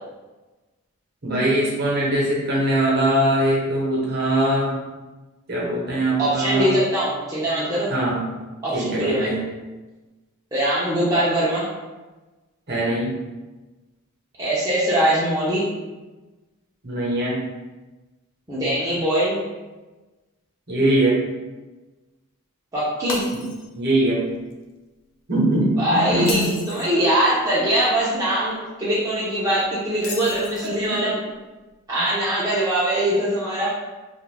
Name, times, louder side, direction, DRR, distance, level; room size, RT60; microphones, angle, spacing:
voice 1, 1.2-4.8 5.5-6.8 7.9-8.2 8.7-9.4 12.7-13.1 16.8-17.4 20.7-21.2 23.3-23.5 23.7-24.2 25.3-26.5 30.0-31.1 32.0-32.1, right 1 dB, 50° right, -5 dB, 0.9 m, -22 dB
voice 2, 6.2-7.9 8.6-9.3 10.5-11.7 14.4-15.7 18.5-19.4 22.7-23.3 25.8-31.2 31.9-33.7, right 1 dB, 15° right, -10 dB, 0.6 m, -22 dB
Shatter, 23.1-23.9 24.3-24.5 26.1-27.0 30.0-30.9, left 4 dB, 60° left, 0.4 m, -34 dB
2.5 x 2.4 x 3.3 m, 1.2 s
head